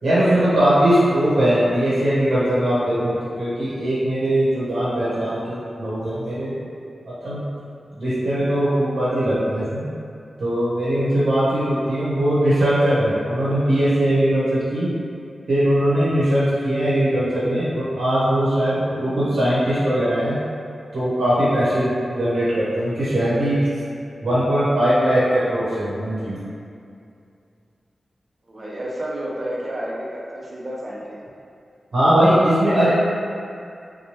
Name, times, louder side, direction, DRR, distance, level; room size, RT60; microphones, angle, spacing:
voice 1, 0.0-6.5 7.1-7.4 8.0-9.8 10.4-14.9 15.5-20.4 20.9-23.6 24.2-26.4 31.9-32.9, right 1 dB, 75° right, -11 dB, 0.9 m, -20 dB
voice 2, 28.5-31.2, right 1 dB, 45° right, -5 dB, 0.5 m, -30 dB
2.9 x 2.2 x 3.1 m, 2.5 s
cardioid pair, 65°, 0 cm